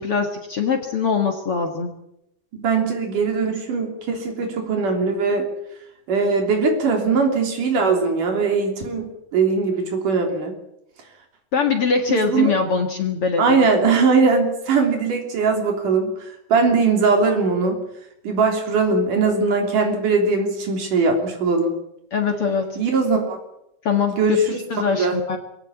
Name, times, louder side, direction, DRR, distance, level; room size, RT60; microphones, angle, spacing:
voice 1, 0.0-1.9 11.5-13.7 22.1-22.8 23.8-24.1 24.7-25.4, left 5 dB, 50° left, 5 dB, 2.6 m, -22 dB
voice 2, 2.5-5.5 6.1-10.5 12.1-12.6 13.4-17.8 18.2-21.7 22.8-23.4 24.2-24.6 24.9-25.2, right 4 dB, 85° right, 3 dB, 4.8 m, -20 dB
23.5 x 17.5 x 8.6 m, 0.81 s
omnidirectional pair, 3.6 m